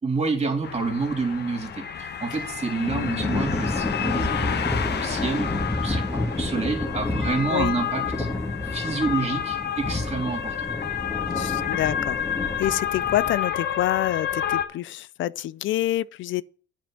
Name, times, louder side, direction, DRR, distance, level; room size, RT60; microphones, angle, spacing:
voice 1, 0.0-8.3 8.6-10.7, right 4 dB, 30° right, 3.3 m, -28 dB
sound 1, 0.6-14.7, left 9 dB, 60° left, 1.2 m, -30 dB
voice 2, 2.8-3.6 7.5-7.7 11.3-12.2 12.6-16.4, left 14 dB, 75° left, 0.4 m, -27 dB
Thunder / Rain, 2.8-13.4, left 2 dB, 15° left, 2.3 m, -30 dB
8.9 x 5.3 x 7.9 m
cardioid pair, 90°, 20 cm